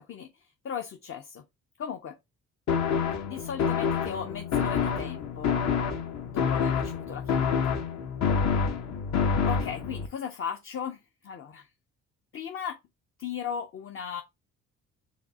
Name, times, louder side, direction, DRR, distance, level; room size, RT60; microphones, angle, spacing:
voice 1, 0.0-1.4 1.8-2.2 3.3-5.5 6.2-7.8 9.4-11.7 12.3-12.8 13.2-14.2, left 8 dB, 45° left, 0.6 m, -37 dB
sound 1, 2.7-10.1, left 6 dB, 65° left, 0.9 m, -27 dB
4.8 x 3.3 x 2.7 m
cardioid pair, 90°, 30 cm